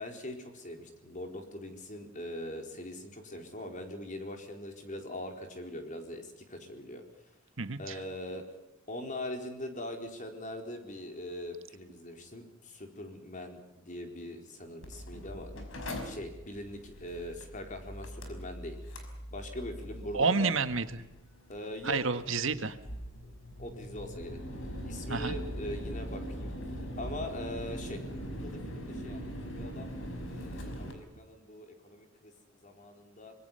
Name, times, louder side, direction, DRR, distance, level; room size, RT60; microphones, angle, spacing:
voice 1, 0.0-7.0 7.8-8.4 8.9-20.5 21.5-22.0 23.6-24.4 24.8-26.5 27.0-33.3, left 1 dB, 35° left, 4 dB, 4.3 m, -42 dB
voice 2, 7.6-8.0 20.1-20.8 21.8-22.8 25.1-25.3, right 4 dB, 65° right, 10 dB, 1.6 m, -29 dB
Mechanical fan, 14.8-30.9, equal, 70° left, 5.4 m, -41 dB
25.5 x 22.5 x 5.7 m, 0.96 s
head